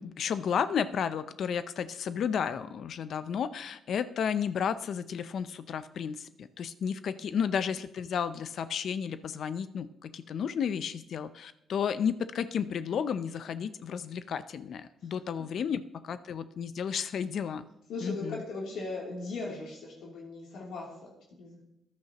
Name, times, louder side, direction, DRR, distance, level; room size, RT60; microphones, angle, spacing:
voice 1, 0.0-17.7 18.0-18.4, left 7 dB, 65° left, 13 dB, 0.5 m, -32 dB
voice 2, 17.9-21.6, left 3 dB, 80° left, -4 dB, 2.9 m, -39 dB
14.5 x 10.5 x 2.9 m, 0.83 s
cardioid pair, 90°, 0 cm